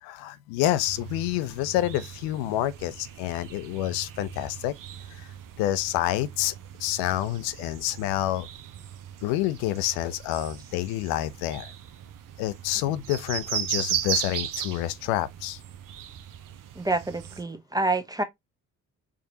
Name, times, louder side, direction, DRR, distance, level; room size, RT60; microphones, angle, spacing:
voice 1, 0.0-4.7 5.1-6.5 6.8-8.5 9.2-11.7 12.4-15.6, left 14 dB, 75° left, 0.5 m, -28 dB
sound 1, 0.9-17.4, right 10 dB, 50° right, 0.7 m, -37 dB
voice 2, 16.8-18.2, right 2 dB, 10° right, 0.6 m, -27 dB
4.6 x 2.5 x 2.7 m
hypercardioid pair, 45°, 40 cm